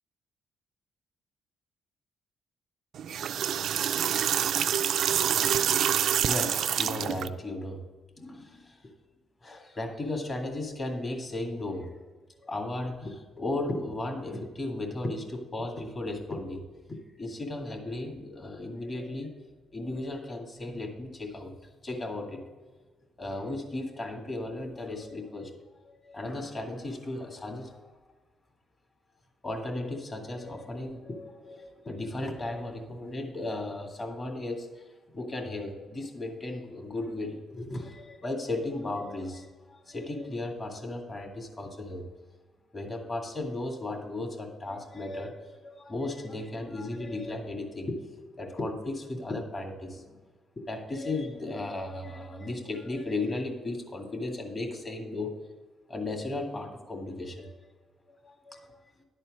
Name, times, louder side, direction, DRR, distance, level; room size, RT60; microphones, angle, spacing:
sound 1, 2.9-7.3, right 9 dB, 70° right, 0.3 m, -26 dB
voice 1, 6.3-7.8 8.2-8.8 9.4-11.9 12.4-16.6 16.9-19.3 19.7-21.5 21.8-22.4 23.2-25.5 25.8-27.7 29.4-42.1 42.7-48.1 48.3-50.2 50.6-55.3 55.9-57.5 58.1-58.7, left 2 dB, 35° left, 2 dB, 1.9 m, -35 dB
11.0 x 4.4 x 7.3 m, 1.3 s
cardioid pair, 90°, 0 cm